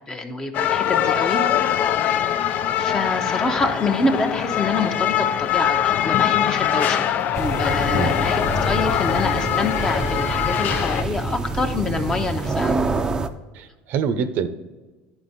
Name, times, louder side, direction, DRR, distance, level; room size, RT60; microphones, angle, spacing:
voice 1, 0.1-1.4 2.1-7.1 7.4-12.8, left 3 dB, 20° left, 5 dB, 0.8 m, -26 dB
sound 1, 0.5-11.0, left 10 dB, 50° left, 0.4 m, -22 dB
sound 2, 3.0-8.4, left 8 dB, 85° left, 0.7 m, -36 dB
sound 3, 7.3-13.3, right 3 dB, 20° right, 0.5 m, -26 dB
voice 2, 7.9-8.2 13.5-14.5, right 6 dB, 60° right, 11 dB, 0.7 m, -25 dB
11.0 x 4.4 x 4.1 m, 1.2 s
supercardioid pair, 125°, 4 cm